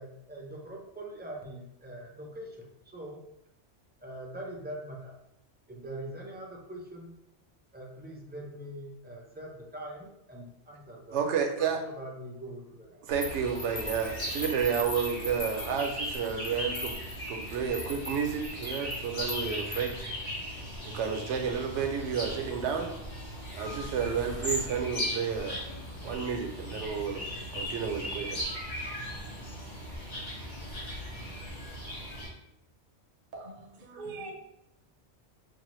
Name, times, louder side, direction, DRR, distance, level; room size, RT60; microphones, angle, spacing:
voice 1, 0.0-2.6 2.9-3.2 4.0-5.1 5.7-7.1 7.7-11.2 11.8-13.0, right 1 dB, 15° right, -2 dB, 0.3 m, -43 dB
voice 2, 11.1-11.8 13.1-17.0 17.3-20.1 20.8-22.9 23.5-25.6 26.0-28.6, right 7 dB, 75° right, 4 dB, 0.9 m, -31 dB
sound 1, 13.1-32.3, equal, 85° left, 1.8 m, -38 dB
sound 2, 13.2-20.1, left 2 dB, 40° left, 0.7 m, -41 dB
voice 3, 33.3-34.3, right 3 dB, 50° right, 1 dB, 0.7 m, -42 dB
5.4 x 2.1 x 3.0 m, 0.81 s
omnidirectional pair, 1.2 m